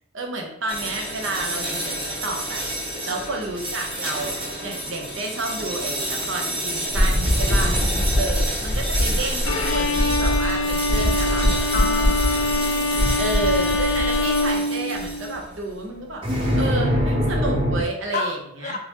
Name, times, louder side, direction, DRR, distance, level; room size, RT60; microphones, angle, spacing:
voice 1, 0.1-2.6 3.0-4.3 4.6-7.8 8.1-11.7 13.2-18.8, right 2 dB, 65° right, 2 dB, 0.7 m, -30 dB
sound 1, 0.7-15.5 16.2-17.8, equal, 25° right, 0.9 m, -28 dB
voice 2, 3.0-3.3 11.7-13.2 18.1-18.3 18.6-18.8, left 4 dB, 35° left, 4 dB, 0.4 m, -31 dB
sound 2, 6.9-14.5, left 1 dB, 50° right, 1.4 m, -23 dB
Bowed string instrument, 9.5-15.4, left 2 dB, 85° left, 0.6 m, -24 dB
3.8 x 2.7 x 2.9 m, 0.75 s
head